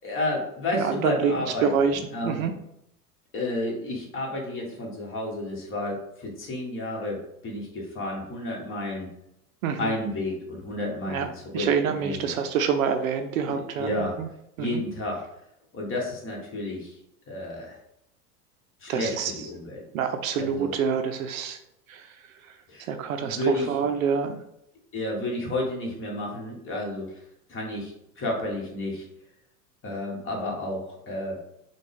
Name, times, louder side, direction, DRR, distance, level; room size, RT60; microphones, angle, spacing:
voice 1, 0.0-2.5 3.3-7.2 7.4-9.1 9.8-11.7 12.0-12.3 13.4-14.1 14.6-15.2 15.7-16.9 17.3-17.8 18.8-19.8 20.3-20.7 22.7-22.9 23.2-23.7 24.9-27.1 27.5-29.1 29.8-31.4, left 1 dB, 25° left, -1 dB, 1.5 m, -31 dB
voice 2, 0.7-1.3 1.6-2.5 9.6-9.9 11.1-11.3 11.5-13.9 14.2-14.3 14.6-14.8 18.9-19.3 19.9-21.6 21.9-22.0 22.9-23.4 23.7-24.4, right 7 dB, 60° right, 7 dB, 0.6 m, -26 dB
5.8 x 2.4 x 3.5 m, 0.78 s
figure-of-eight pair, 85°, 48 cm